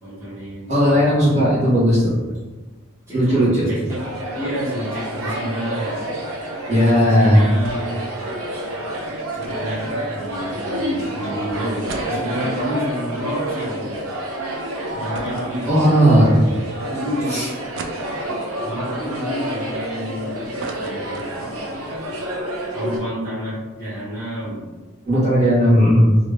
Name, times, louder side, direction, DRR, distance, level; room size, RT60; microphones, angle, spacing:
voice 1, 0.0-1.4 2.2-2.5 3.1-4.0 4.3-6.3 6.9-8.1 9.3-14.0 14.9-16.4 16.9-17.4 18.6-21.7 22.7-24.7, equal, 15° right, -13 dB, 1.2 m, -29 dB
voice 2, 0.7-2.1 3.1-3.7 6.7-7.4 15.7-16.4 17.3-17.5 25.0-26.2, equal, 35° right, -9 dB, 1.4 m, -15 dB
sound 1, 3.9-23.0, right 1 dB, 80° right, 0.7 m, -29 dB
sound 2, 7.6-8.1 8.3-8.4 9.4-10.7 11.2-11.3 11.6-14.1 14.4-14.5 15.1-16.3 16.8-16.9 17.8-18.6 19.1-20.1 20.4-21.7 22.1-22.2 22.4-22.6, right 3 dB, 60° right, 0.4 m, -37 dB
3.2 x 2.5 x 3.3 m, 1.2 s
head